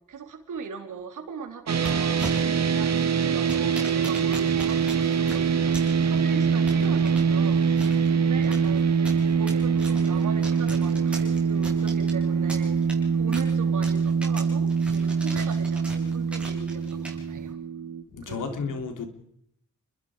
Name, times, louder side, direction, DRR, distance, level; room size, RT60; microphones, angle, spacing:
voice 1, 0.1-2.3 2.7-9.0 9.3-12.8 13.1-17.6 18.2-18.6, right 6 dB, 85° right, 3.4 m, -39 dB
sound 1, 1.7-17.5, right 2 dB, 5° right, 7.5 m, -42 dB
sound 2, 1.7-18.0, right 6 dB, 60° right, 1.8 m, -24 dB
voice 2, 18.1-19.1, left 5 dB, 85° left, 3.2 m, -32 dB
29.5 x 21.5 x 5.0 m
cardioid pair, 90°, 30 cm